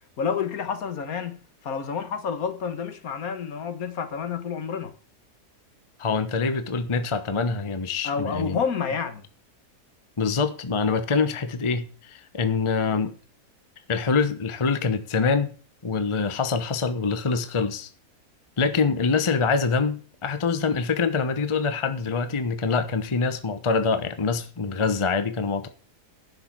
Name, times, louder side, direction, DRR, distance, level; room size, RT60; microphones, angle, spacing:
voice 1, 0.2-4.9 8.0-9.2, left 6 dB, 65° left, 1.6 m, -29 dB
voice 2, 6.0-8.6 10.2-13.1 13.9-15.5 15.8-17.9 18.6-25.7, left 4 dB, 25° left, 0.8 m, -25 dB
10.5 x 6.5 x 7.4 m
omnidirectional pair, 1.7 m